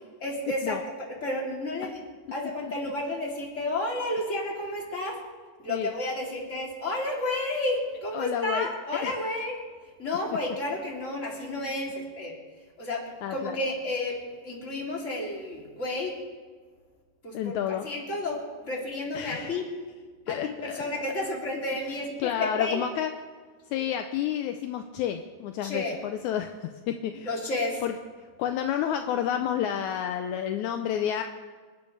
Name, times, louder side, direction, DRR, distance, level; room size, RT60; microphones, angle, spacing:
voice 1, 0.2-0.8 1.1-2.0 2.3-5.2 5.6-9.6 10.0-12.3 12.8-13.0 13.3-16.2 17.2-19.6 20.3-22.8 25.6-25.9 27.2-27.8, left 2 dB, 20° left, -3 dB, 3.0 m, -31 dB
voice 2, 8.1-9.2 13.2-13.6 17.3-17.9 19.1-19.6 20.3-20.8 21.2-21.3 22.2-23.1 23.7-27.3 27.8-27.9 28.4-31.2, left 10 dB, 80° left, 6 dB, 1.8 m, -30 dB
27.5 x 11.5 x 3.3 m, 1.5 s
omnidirectional pair, 3.9 m